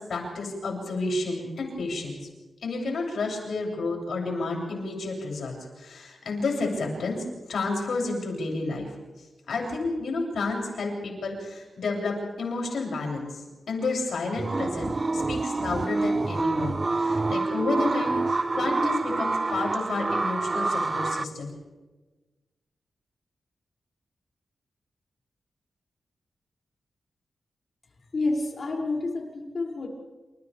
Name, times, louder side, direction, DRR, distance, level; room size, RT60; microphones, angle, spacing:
voice 1, 0.0-2.3 2.6-8.9 9.5-21.5, left 3 dB, 85° left, -1 dB, 7.6 m, -31 dB
sound 1, 14.4-21.2, right 3 dB, 30° right, 0.6 m, -27 dB
voice 2, 28.1-29.9, left 2 dB, 50° left, -1 dB, 6.6 m, -29 dB
30.0 x 29.0 x 3.5 m, 1.2 s
wide cardioid pair, 105°, 0 cm